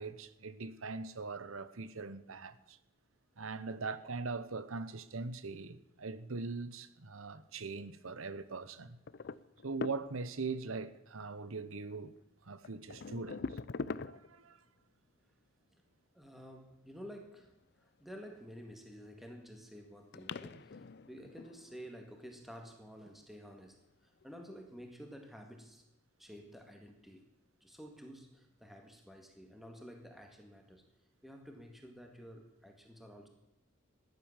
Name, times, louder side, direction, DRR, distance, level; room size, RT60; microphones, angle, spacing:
voice 1, 0.0-2.8 3.4-9.0 9.6-12.1 12.4-13.6 14.1-14.6, right 4 dB, 80° right, 1.0 m, -41 dB
sound 1, 9.1-10.5 11.9-12.1 12.6-14.5 18.4-19.0 19.6-19.7 20.1-22.1 23.1-23.4 24.2-24.3 24.8-24.9, left 4 dB, 55° left, 0.5 m, -43 dB
voice 2, 16.1-25.9 26.2-27.3 27.6-30.8 31.2-33.3, equal, ahead, 1.9 m, -51 dB
15.5 x 11.0 x 7.3 m
head